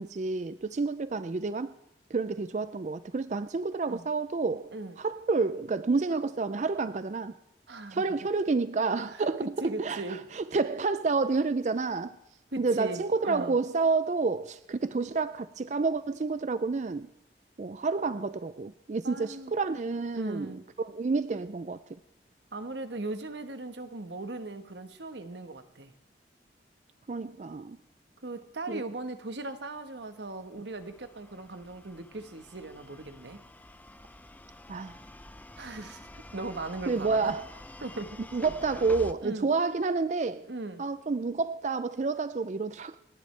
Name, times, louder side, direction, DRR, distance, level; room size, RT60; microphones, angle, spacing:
voice 1, 0.0-1.7 2.1-4.7 5.0-7.3 7.9-12.2 12.6-17.1 17.6-21.8 27.1-27.8 28.7-28.9 34.7-35.0 36.9-37.4 38.3-40.5 40.8-43.0, right 4 dB, 40° right, 0.4 m, -29 dB
voice 2, 4.7-5.0 7.7-8.1 9.1-10.3 12.5-13.6 19.0-19.5 20.1-20.6 22.5-25.9 28.2-33.4 35.6-37.3 37.8-38.2 39.2-39.5 40.5-40.8, right 2 dB, 75° right, 1.3 m, -38 dB
sound 1, 30.3-39.1, left 1 dB, 10° left, 0.5 m, -48 dB
28.5 x 10.5 x 3.3 m
head